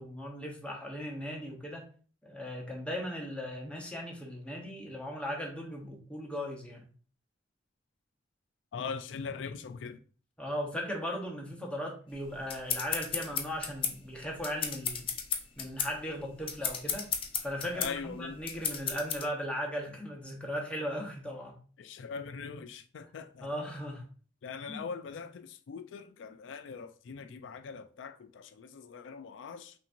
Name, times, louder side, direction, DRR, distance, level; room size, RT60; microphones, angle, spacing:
voice 1, 0.0-1.9 2.2-6.9 10.4-15.1 15.6-17.1 17.4-21.5 23.4-24.1 24.7-24.8, equal, 5° left, 0.9 m, -37 dB
voice 2, 8.7-10.0 17.7-18.4 21.8-23.5 24.4-29.7, left 5 dB, 90° left, 0.4 m, -41 dB
sound 1, 12.1-19.3, left 7 dB, 30° left, 0.5 m, -34 dB
5.6 x 2.7 x 2.6 m
head